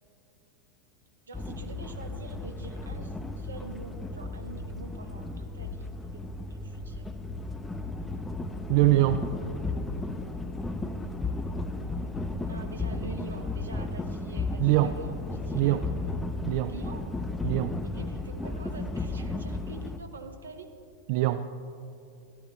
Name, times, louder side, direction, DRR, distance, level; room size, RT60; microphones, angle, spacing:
sound 1, 1.3-20.0, left 2 dB, 10° left, 0.5 m, -34 dB
voice 1, 1.3-6.2 6.5-7.2 12.4-16.0 16.6-17.0 17.8-20.7, right 3 dB, 70° right, 5 dB, 1.0 m, -46 dB
voice 2, 8.7-9.3 14.6-14.9 15.5-15.9 16.5-16.7 17.4-17.8 21.1-21.4, right 15 dB, 45° right, 10 dB, 0.3 m, -23 dB
13.0 x 13.0 x 3.1 m, 2.6 s
figure-of-eight pair, 90°, 0 cm